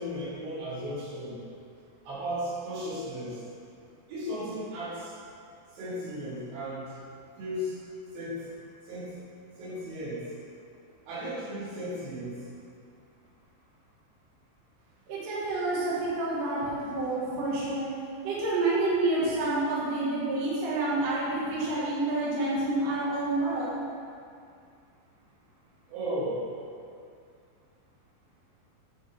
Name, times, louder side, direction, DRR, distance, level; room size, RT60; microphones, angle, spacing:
voice 1, 0.0-1.4 2.1-3.4 4.1-5.1 5.8-6.9 7.4-7.8 8.1-8.4 8.9-9.1 9.6-10.3 11.1-12.4 25.9-26.4, equal, 75° right, -8 dB, 4.2 m, -35 dB
voice 2, 15.1-17.9 18.2-23.8, right 2 dB, 55° right, -8 dB, 3.0 m, -28 dB
9.4 x 8.1 x 3.6 m, 2.4 s
omnidirectional pair, 5.2 m